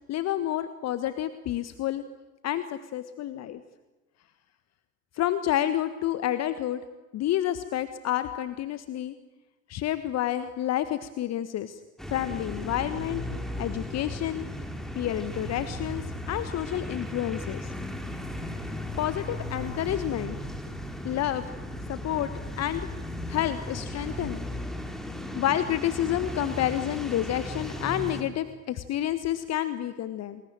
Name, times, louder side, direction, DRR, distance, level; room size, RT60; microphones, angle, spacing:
voice 1, 0.1-2.0 2.4-3.6 5.1-6.8 7.1-9.2 9.7-11.8 12.1-13.2 13.6-14.5 14.9-17.7 19.0-20.4 21.0-21.5 21.9-22.9 23.3-24.4 25.3-30.4, left 12 dB, 35° left, 12 dB, 1.4 m, -29 dB
sound 1, 12.0-28.2, left 1 dB, ahead, 4.1 m, -36 dB
29.5 x 21.0 x 9.0 m, 1.1 s
figure-of-eight pair, 70°, 42 cm